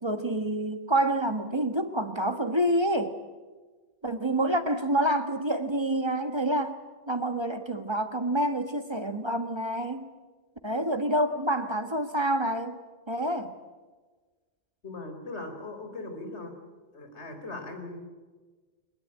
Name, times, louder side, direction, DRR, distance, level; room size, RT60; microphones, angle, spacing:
voice 1, 0.0-3.2 4.0-10.1 10.6-12.8 13.1-13.5, right 1 dB, 25° right, 8 dB, 1.4 m, -28 dB
voice 2, 14.8-16.5 16.9-18.0, left 2 dB, 90° left, 5 dB, 4.3 m, -39 dB
22.5 x 21.5 x 8.7 m, 1.4 s
omnidirectional pair, 1.1 m